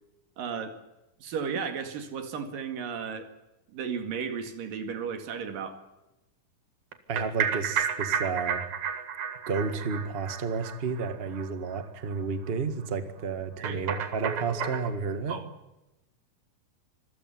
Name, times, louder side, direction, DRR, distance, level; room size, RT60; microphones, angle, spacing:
voice 1, 0.4-0.8 1.2-3.3 3.7-5.8 13.6-13.8 15.3-15.5, right 6 dB, 80° right, 7 dB, 3.9 m, -34 dB
sound 1, 6.9-11.5 11.7-11.8 12.1-12.2 12.5-12.6 13.6-15.0, right 7 dB, 65° right, 3.1 m, -32 dB
voice 2, 7.1-8.6 9.5-15.4, right 5 dB, 30° right, 10 dB, 1.2 m, -31 dB
26.0 x 15.0 x 9.6 m, 0.97 s
omnidirectional pair, 3.9 m